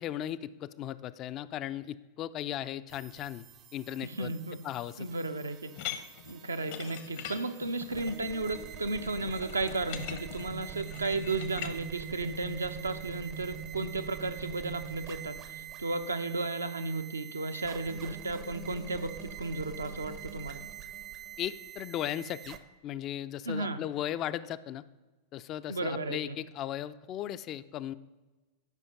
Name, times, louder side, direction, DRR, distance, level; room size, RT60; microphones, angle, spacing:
voice 1, 0.0-4.3 4.6-5.1 21.4-22.6 22.8-24.8 25.3-27.9, left 11 dB, 35° left, 14 dB, 0.3 m, -37 dB
sound 1, 2.9-22.6, right 9 dB, 35° right, 0.6 m, -44 dB
voice 2, 4.0-4.6 5.0-5.7 6.3-20.6 23.5-23.8 25.7-26.4, right 2 dB, 75° right, 8 dB, 0.6 m, -34 dB
sound 2, 5.7-11.7, left 10 dB, 50° left, 0.8 m, -42 dB
10.5 x 5.6 x 5.4 m, 1.2 s
figure-of-eight pair, 90°, 0 cm